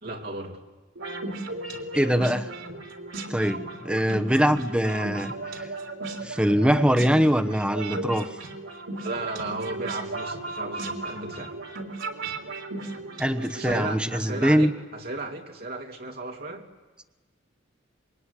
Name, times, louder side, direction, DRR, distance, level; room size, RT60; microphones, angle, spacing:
voice 1, 0.0-0.6 9.0-11.5 13.5-16.6, right 2 dB, 50° right, 1 dB, 3.2 m, -34 dB
sound 1, 1.0-13.7, right 2 dB, 85° right, 3.5 m, -36 dB
voice 2, 1.9-2.5 3.3-5.3 5.6-5.7 6.2-8.3 13.2-14.7, equal, 5° right, 7 dB, 1.1 m, -23 dB
26.5 x 22.5 x 9.9 m, 1.2 s
head